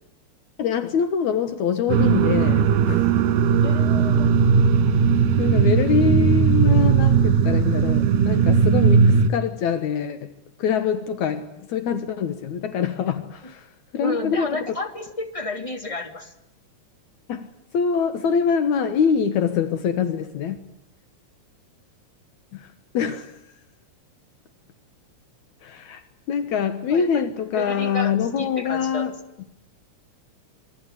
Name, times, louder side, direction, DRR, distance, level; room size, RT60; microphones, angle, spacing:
voice 1, 0.6-3.1 5.4-10.3 10.6-14.7 17.3-17.5 17.7-20.6 22.5-22.7 22.9-23.3 25.6-26.0 26.3-29.1, left 7 dB, 75° left, 2.6 m, -24 dB
sound 1, 1.9-9.3, right 6 dB, 80° right, 3.0 m, -18 dB
voice 2, 3.6-4.3 11.6-11.7 13.4-13.5 14.0-16.3 26.9-27.3 27.6-29.1, left 2 dB, 10° left, 2.4 m, -31 dB
27.5 x 22.0 x 9.9 m
omnidirectional pair, 3.4 m